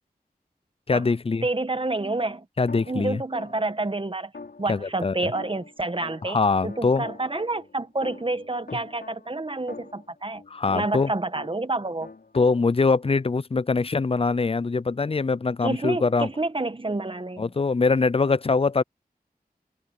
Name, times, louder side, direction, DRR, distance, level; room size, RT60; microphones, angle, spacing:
voice 1, 0.9-1.5 2.6-3.2 4.7-5.3 6.2-7.1 10.5-11.1 12.3-16.3 17.4-18.8, left 4 dB, 35° left, 0.5 m, -23 dB
voice 2, 1.4-2.5 2.9-4.3 4.6-6.4 6.6-10.4 10.7-12.1 15.6-17.5, right 2 dB, 35° right, 1.3 m, -28 dB
sound 1, 2.7-3.8 4.3-6.4 6.7-11.8 12.0-12.6, left 4 dB, 85° left, 6.2 m, -44 dB
wide cardioid pair, 50°, 16 cm